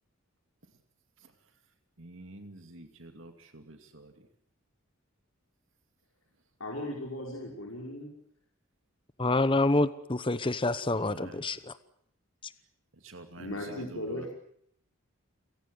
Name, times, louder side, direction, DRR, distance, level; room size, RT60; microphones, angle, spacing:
voice 1, 2.0-4.1 10.9-11.4 13.0-14.3, right 2 dB, 65° right, 2.5 m, -48 dB
voice 2, 6.6-8.1 13.4-14.3, left 1 dB, 80° left, 5.6 m, -37 dB
voice 3, 9.2-11.7, left 2 dB, 25° left, 0.9 m, -27 dB
29.0 x 17.5 x 8.0 m
head